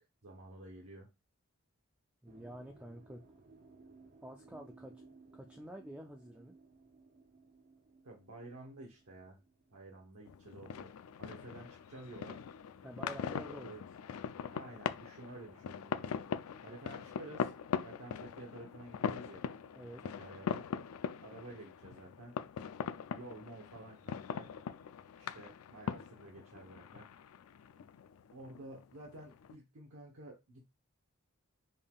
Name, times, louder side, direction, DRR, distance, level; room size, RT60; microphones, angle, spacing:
voice 1, 0.2-1.1 8.0-9.4 9.7-10.9 11.2-12.4 13.6-13.8 14.5-16.3 16.6-17.5 17.8-19.5 20.0-20.6 21.2-22.4 23.1-24.5 25.2-27.1 28.3-30.6, right 2 dB, 80° right, -1 dB, 1.0 m, -51 dB
voice 2, 2.2-3.2 4.2-5.1 5.3-6.5 12.8-13.8 19.8-20.0, right 1 dB, 5° right, 2 dB, 0.3 m, -48 dB
sound 1, 2.3-9.8, right 3 dB, 40° right, 0.7 m, -60 dB
sound 2, 10.3-29.5, left 7 dB, 80° left, 0.4 m, -42 dB
5.3 x 3.6 x 2.3 m, 0.23 s
head